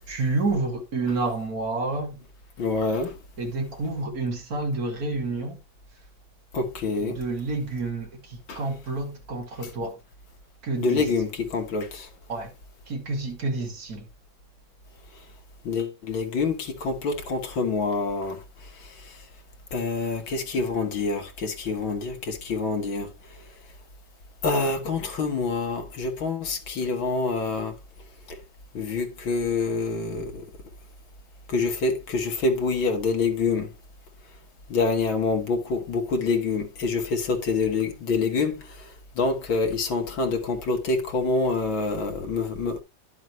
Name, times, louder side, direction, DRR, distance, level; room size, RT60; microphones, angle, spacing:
voice 1, 0.1-2.2 3.4-5.6 7.0-10.0 10.6-11.0 12.3-12.5 12.9-14.1, right 3 dB, 45° right, 3.0 m, -29 dB
voice 2, 2.6-3.1 6.5-7.2 10.8-11.9 15.7-16.6 16.8-18.3 19.7-23.1 24.4-27.7 28.7-30.3 31.5-33.7 34.7-38.6 39.2-42.7, left 4 dB, 70° left, 2.6 m, -26 dB
11.0 x 7.0 x 3.2 m
omnidirectional pair, 2.2 m